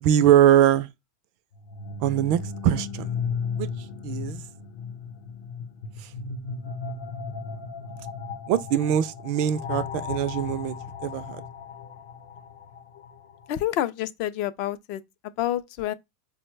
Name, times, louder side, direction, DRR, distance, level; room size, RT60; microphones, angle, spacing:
voice 1, 0.0-0.9 2.0-3.1 3.6-3.7 4.0-4.4 8.5-10.8 11.0-11.4, right 11 dB, 50° right, 0.3 m, -22 dB
sound 1, 1.5-13.4, left 5 dB, 65° left, 0.7 m, -35 dB
voice 2, 13.5-15.0 15.4-15.9, left 13 dB, 50° left, 0.3 m, -28 dB
4.5 x 2.1 x 3.1 m
supercardioid pair, 145°, 2 cm